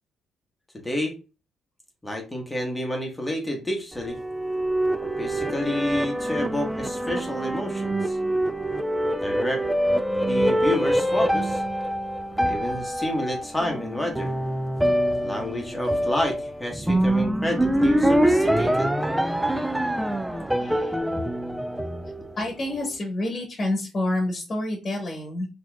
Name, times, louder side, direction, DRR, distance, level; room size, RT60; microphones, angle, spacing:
voice 1, 2.0-4.2 5.0-8.2 9.2-9.6 10.2-11.6 12.4-14.3 15.2-18.9, left 1 dB, 10° left, 1 dB, 1.1 m, -29 dB
sound 1, 3.9-22.5, right 1 dB, 5° right, 0.4 m, -25 dB
voice 2, 20.6-20.9 22.2-25.5, left 1 dB, 35° left, 1 dB, 1.2 m, -28 dB
4.2 x 2.9 x 2.2 m, 0.29 s
cardioid pair, 90°, 0 cm